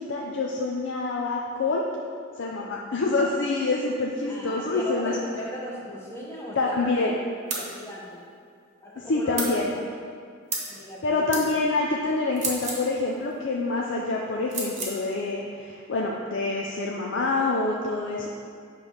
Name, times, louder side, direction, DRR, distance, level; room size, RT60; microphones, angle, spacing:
voice 1, 0.0-1.9 2.4-5.1 6.6-7.1 9.0-9.7 11.0-18.3, left 3 dB, 65° left, -2 dB, 0.5 m, -26 dB
voice 2, 4.3-7.2 7.4-8.2 8.8-9.6 10.7-11.5, equal, 15° left, -5 dB, 1.0 m, -37 dB
sound 1, 7.5-7.7 9.4-9.6 10.5-10.7 11.3-11.5 12.3-12.9 14.5-15.0, right 3 dB, 35° right, 1.0 m, -30 dB
6.8 x 3.2 x 5.4 m, 2.2 s
head